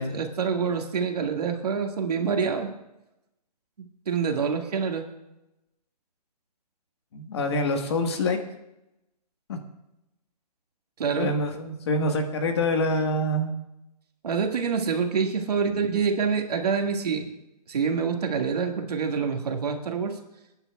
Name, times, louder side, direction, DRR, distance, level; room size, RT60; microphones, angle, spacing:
voice 1, 0.0-2.7 3.8-5.1 11.0-11.3 14.2-17.3 17.7-20.2, right 6 dB, 70° right, 3 dB, 1.9 m, -26 dB
voice 2, 7.1-8.4 9.5-9.6 11.2-13.5, left 1 dB, 40° left, 5 dB, 1.5 m, -26 dB
26.0 x 10.0 x 2.3 m, 0.91 s
hypercardioid pair, 170°, 21 cm